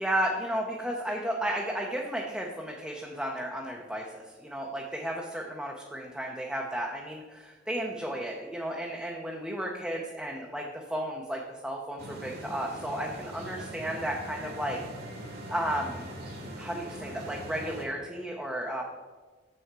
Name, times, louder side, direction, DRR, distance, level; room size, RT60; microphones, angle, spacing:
voice 1, 0.0-14.8 15.5-16.0 16.6-18.8, right 1 dB, 5° right, -1 dB, 0.6 m, -33 dB
sound 1, 12.0-17.9, equal, 55° right, 1.4 m, -41 dB
7.0 x 6.5 x 4.6 m, 1.3 s
head